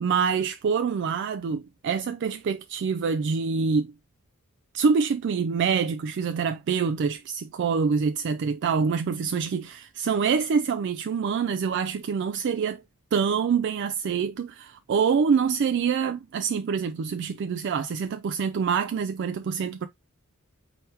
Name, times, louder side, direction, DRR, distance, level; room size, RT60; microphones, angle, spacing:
voice 1, 0.0-3.9 4.7-12.8 13.1-19.9, right 6 dB, 55° right, 0.3 m, -26 dB
4.6 x 3.3 x 3.0 m
head